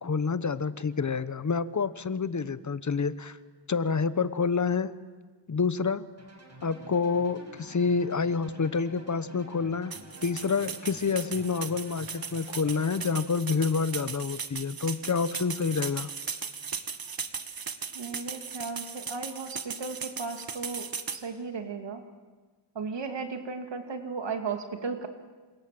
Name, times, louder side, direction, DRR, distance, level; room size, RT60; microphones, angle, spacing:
voice 1, 0.0-3.4 3.7-4.9 5.5-6.0 6.6-16.1, left 5 dB, 40° left, 14 dB, 1.1 m, -28 dB
sound 1, 6.2-13.0, right 1 dB, 40° right, 6.0 m, -49 dB
sound 2, 9.9-21.2, right 6 dB, 55° right, 1.8 m, -37 dB
voice 2, 17.9-22.0 22.7-25.1, right 4 dB, 80° right, 5 dB, 2.8 m, -35 dB
28.5 x 26.5 x 7.8 m, 1.4 s
wide cardioid pair, 100°, 43 cm